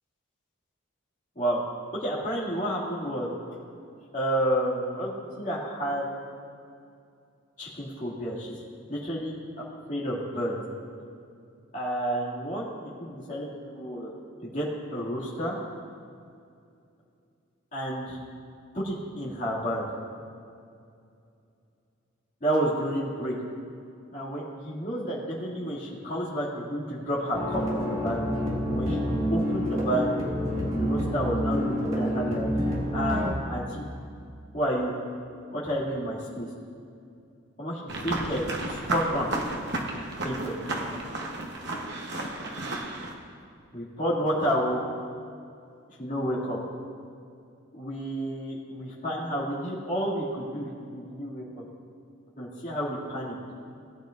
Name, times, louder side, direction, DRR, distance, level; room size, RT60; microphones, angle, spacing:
voice 1, 2.0-3.3 4.1-5.1 5.4-6.1 7.6-8.5 8.9-9.3 9.9-10.5 11.7-14.1 14.4-15.6 17.7-18.2 18.7-19.8 22.4-23.4 24.1-28.2 28.7-29.0 29.3-30.0 30.8-32.5 32.9-33.9 34.5-34.9 35.5-36.5 37.6-38.4 38.7-39.3 40.2-40.6 43.7-44.8 46.0-46.6 47.7-51.6 52.4-53.3, equal, 35° left, -7 dB, 2.4 m, -30 dB
sound 1, 27.3-33.3, equal, 30° right, 1.9 m, -28 dB
sound 2, 37.9-43.1, right 2 dB, 55° right, 1.1 m, -33 dB
18.0 x 9.0 x 2.6 m, 2.4 s
head